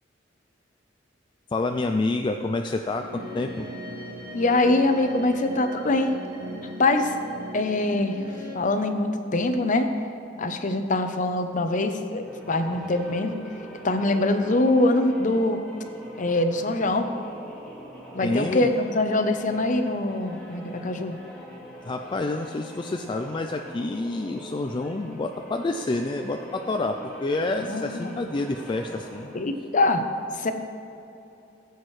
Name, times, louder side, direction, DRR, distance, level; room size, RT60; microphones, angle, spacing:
voice 1, 1.5-3.0 3.3-3.7 18.2-18.7 21.8-29.3, left 2 dB, 25° left, 4 dB, 0.3 m, -28 dB
sound 1, 2.9-8.6, equal, 55° right, 2.0 m, -38 dB
voice 2, 4.3-6.1 6.8-7.1 7.5-8.2 8.5-9.9 10.4-13.3 13.8-15.6 16.2-17.1 18.1-21.2 27.6-28.1 29.3-30.0 30.4-30.5, left 2 dB, 45° left, 7 dB, 0.7 m, -23 dB
sound 2, 12.1-29.6, equal, 5° left, 1.8 m, -43 dB
16.0 x 8.1 x 3.2 m, 2.8 s
head